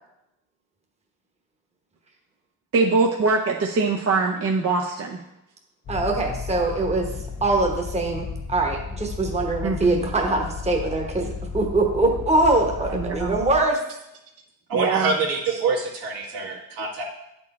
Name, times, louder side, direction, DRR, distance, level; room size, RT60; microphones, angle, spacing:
voice 1, 2.7-5.2 9.6-10.0 12.9-13.4 14.7-15.1, right 4 dB, 40° right, -1 dB, 0.7 m, -23 dB
sound 1, 5.8-13.6, left 5 dB, 50° left, 1.4 m, -34 dB
voice 2, 5.9-7.1 7.4-13.8, right 2 dB, 20° right, 1 dB, 1.1 m, -23 dB
voice 3, 14.7-17.0, right 4 dB, 75° right, -3 dB, 1.9 m, -25 dB
9.6 x 4.5 x 4.3 m, 0.86 s
cardioid pair, 125°, 36 cm